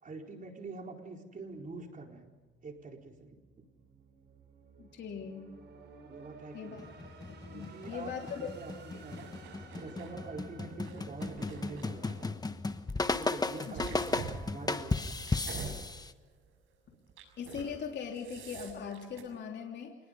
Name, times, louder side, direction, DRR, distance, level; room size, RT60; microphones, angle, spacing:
voice 1, 0.0-2.3 2.6-3.4 6.0-6.8 7.5-9.3 9.7-12.3 13.1-15.2 16.9-17.0, right 3 dB, 40° right, 2 dB, 4.6 m, -45 dB
sound 1, 1.5-12.5, right 4 dB, 60° right, 5.7 m, -56 dB
voice 2, 4.8-5.5 6.5-6.9 7.3-8.5 8.9-9.0 13.7-13.8 17.4-20.0, left 6 dB, 60° left, 1 dB, 3.2 m, -40 dB
sound 2, 6.8-16.1, left 3 dB, 20° left, 1.3 m, -36 dB
sound 3, 9.2-10.2 10.7-12.3 12.9-15.8 16.2-16.5 17.1-17.7 18.0-19.2, right 5 dB, 85° right, 6.8 m, -46 dB
27.5 x 20.5 x 5.4 m, 1.3 s
cardioid pair, 90°, 20 cm